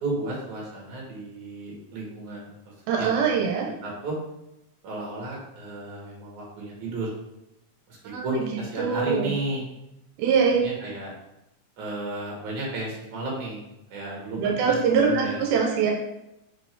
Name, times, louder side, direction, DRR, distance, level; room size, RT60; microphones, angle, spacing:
voice 1, 0.0-2.5 3.0-3.1 3.8-4.2 4.8-7.1 7.9-8.0 8.2-9.6 10.5-11.1 11.8-13.6 13.9-14.8 15.0-15.4, right 2 dB, 55° right, -3 dB, 3.2 m, -33 dB
voice 2, 2.9-3.7 8.0-9.4 10.2-10.6 14.4-15.9, right 6 dB, 90° right, -1 dB, 2.7 m, -23 dB
6.0 x 5.1 x 3.5 m, 0.89 s
omnidirectional pair, 4.3 m